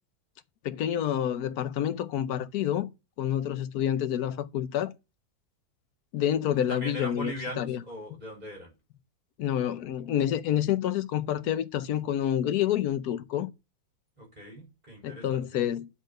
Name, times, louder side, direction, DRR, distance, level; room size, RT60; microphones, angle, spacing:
voice 1, 0.6-2.9 3.2-4.9 6.1-7.8 9.4-13.5 15.0-15.9, left 10 dB, 75° left, 1.2 m, -28 dB
voice 2, 6.6-8.7 14.2-15.7, right 1 dB, 25° right, 3.7 m, -40 dB
8.3 x 3.9 x 6.4 m
omnidirectional pair, 1.7 m